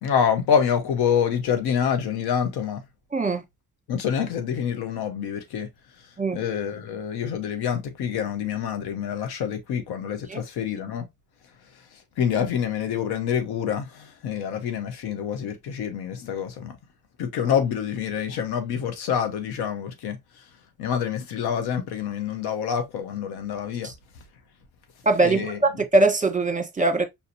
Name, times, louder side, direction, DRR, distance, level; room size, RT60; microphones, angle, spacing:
voice 1, 0.0-2.8 3.9-5.7 6.3-11.1 12.2-16.8 17.2-20.2 20.8-23.9 25.2-25.6, left 8 dB, 90° left, 0.9 m, -26 dB
voice 2, 3.1-3.4 6.2-6.4 10.3-10.4 23.8-23.9 25.0-27.0, right 2 dB, 20° right, 1.1 m, -22 dB
5.6 x 2.6 x 2.7 m
supercardioid pair, 60°, 37 cm